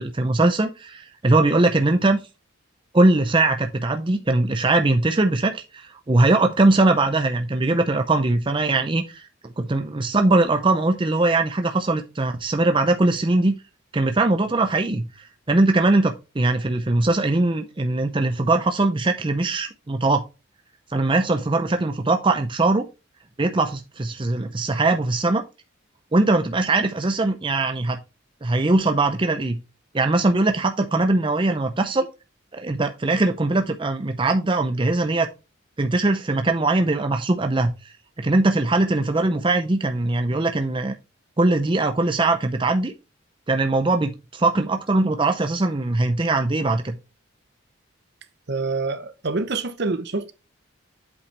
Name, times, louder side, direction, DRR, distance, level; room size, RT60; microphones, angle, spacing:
voice 1, 0.0-2.2 2.9-9.2 9.6-13.5 13.9-20.2 20.9-22.9 23.4-25.4 26.1-28.0 28.4-29.6 29.9-32.1 32.5-35.3 35.8-37.7 38.2-40.9 41.4-42.9 43.5-47.0, right 2 dB, 25° right, 0.6 m, -21 dB
voice 2, 48.5-50.3, right 3 dB, 55° right, 0.9 m, -26 dB
8.2 x 5.5 x 3.4 m
head